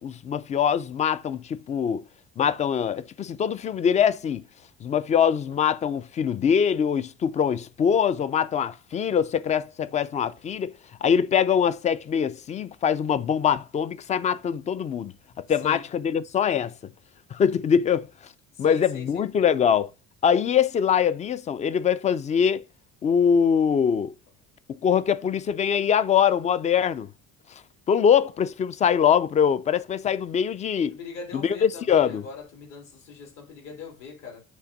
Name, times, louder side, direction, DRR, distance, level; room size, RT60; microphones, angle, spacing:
voice 1, 0.0-2.0 2.4-4.4 4.8-10.7 11.0-15.1 15.5-16.7 17.3-18.1 18.6-19.9 20.2-22.6 23.0-24.1 24.8-27.1 27.9-31.0 31.4-32.2, left 8 dB, 25° left, 0.4 m, -23 dB
voice 2, 18.6-19.2 30.9-34.4, left 5 dB, 60° left, 3.6 m, -41 dB
8.4 x 3.5 x 5.1 m
cardioid pair, 155°, 31 cm